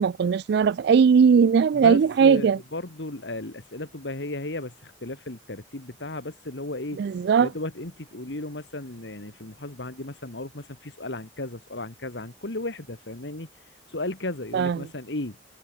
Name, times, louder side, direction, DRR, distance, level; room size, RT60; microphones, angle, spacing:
voice 1, 0.0-2.6 7.0-7.5 14.5-14.8, right 6 dB, 65° right, 0.3 m, -19 dB
voice 2, 1.7-7.0 7.4-13.5 13.9-15.4, left 2 dB, 70° left, 2.2 m, -35 dB
head